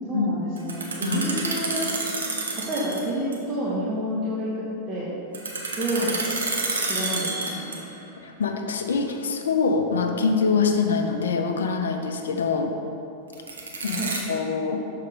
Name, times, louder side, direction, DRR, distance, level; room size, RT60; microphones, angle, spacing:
voice 1, 0.1-1.9 2.5-5.2 5.7-6.2 6.8-7.7 14.0-14.1, right 1 dB, 25° right, -8 dB, 1.1 m, -29 dB
sound 1, 0.6-3.1 3.3-3.4 5.3-8.0 13.3-14.2, right 3 dB, 70° right, 0.8 m, -29 dB
voice 2, 8.2-12.7 13.8-14.8, left 5 dB, 65° left, 5 dB, 0.5 m, -24 dB
6.5 x 4.9 x 3.7 m, 2.8 s
figure-of-eight pair, 90°, 0 cm